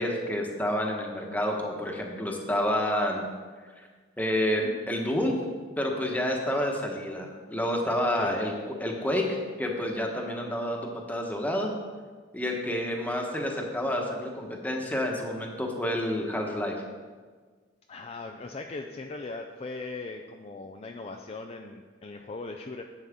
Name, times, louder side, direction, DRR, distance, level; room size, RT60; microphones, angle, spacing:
voice 1, 0.0-3.2 3.8-3.9 4.2-5.5 5.8-8.5 8.8-11.7 12.3-16.8, left 1 dB, 10° left, 0 dB, 1.3 m, -29 dB
voice 2, 17.9-22.8, left 3 dB, 35° left, 3 dB, 0.5 m, -39 dB
10.5 x 8.0 x 3.6 m, 1.5 s
head